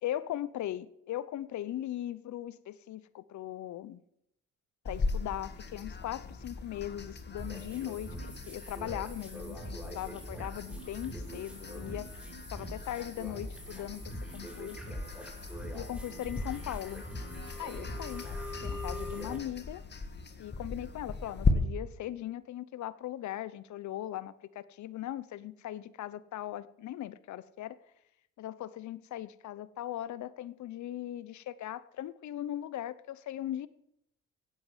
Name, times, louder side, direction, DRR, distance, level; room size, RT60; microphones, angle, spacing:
voice 1, 0.0-4.0 4.8-12.1 12.5-14.9 15.7-17.0 17.6-18.3 18.6-19.8 20.4-27.8 28.4-33.7, left 12 dB, 70° left, 17 dB, 0.9 m, -39 dB
sound 1, 4.8-21.5, left 4 dB, 35° left, 1.9 m, -38 dB
sound 2, 7.4-19.4, equal, 5° right, 6.4 m, -43 dB
16.0 x 9.2 x 7.5 m, 0.77 s
cardioid pair, 90°, 30 cm